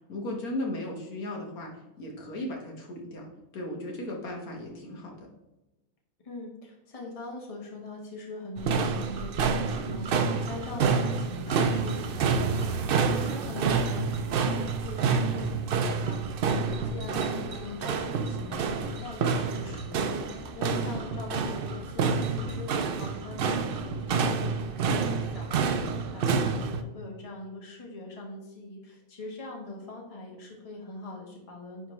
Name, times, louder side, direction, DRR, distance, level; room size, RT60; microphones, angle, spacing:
voice 1, 0.1-1.7 2.0-5.3, left 1 dB, 80° left, 0 dB, 1.7 m, -36 dB
voice 2, 6.2-31.9, left 2 dB, 25° left, -1 dB, 1.3 m, -42 dB
sound 1, 8.6-26.8, right 5 dB, 75° right, 0.5 m, -28 dB
9.7 x 3.5 x 3.1 m, 0.99 s
omnidirectional pair, 1.5 m